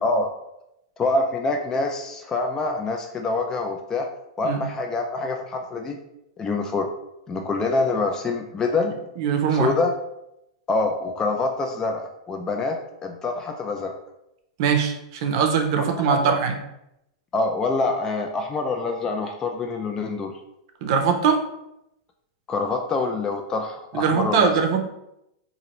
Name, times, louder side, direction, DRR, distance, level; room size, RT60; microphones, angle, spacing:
voice 1, 0.0-0.3 1.0-4.1 4.4-6.0 6.4-6.9 7.3-8.9 9.5-9.9 10.7-14.0 16.1-16.4 17.3-20.4 22.5-24.5, left 3 dB, 20° left, 3 dB, 0.3 m, -25 dB
voice 2, 9.2-9.7 14.6-16.6 20.8-21.4 23.9-24.8, right 6 dB, 60° right, 5 dB, 0.5 m, -21 dB
2.8 x 2.5 x 2.9 m, 0.84 s
hypercardioid pair, 120°, 3 cm